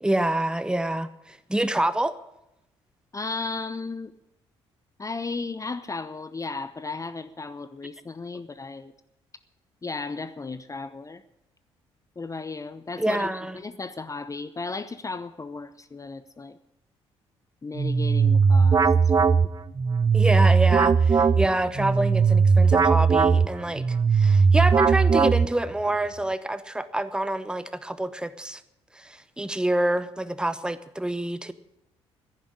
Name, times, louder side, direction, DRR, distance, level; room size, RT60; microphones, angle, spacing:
voice 1, 0.0-2.2 13.0-13.6 20.1-23.8 24.1-28.6 28.9-31.5, right 1 dB, 5° right, 14 dB, 1.0 m, -27 dB
voice 2, 3.1-4.1 5.0-8.9 9.8-11.2 12.2-16.6 17.6-18.9, left 3 dB, 25° left, 13 dB, 0.7 m, -35 dB
sound 1, 17.8-25.8, right 5 dB, 25° right, 0.6 m, -19 dB
11.0 x 10.5 x 9.9 m, 0.85 s
figure-of-eight pair, 45°, 14 cm